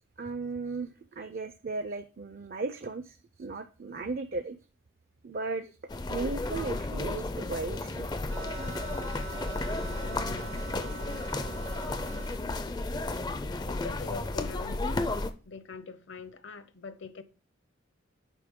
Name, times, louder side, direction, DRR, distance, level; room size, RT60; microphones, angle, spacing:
voice 1, 0.2-4.6 5.2-5.7 6.1-8.1, right 3 dB, 45° right, 0.4 m, -36 dB
sound 1, 5.9-15.3, left 2 dB, 20° left, 0.4 m, -33 dB
sound 2, 8.3-12.4, right 3 dB, 80° right, 2.1 m, -43 dB
voice 2, 9.9-11.8 13.7-14.9 15.5-17.2, left 4 dB, 60° left, 0.7 m, -44 dB
8.4 x 5.3 x 3.6 m
head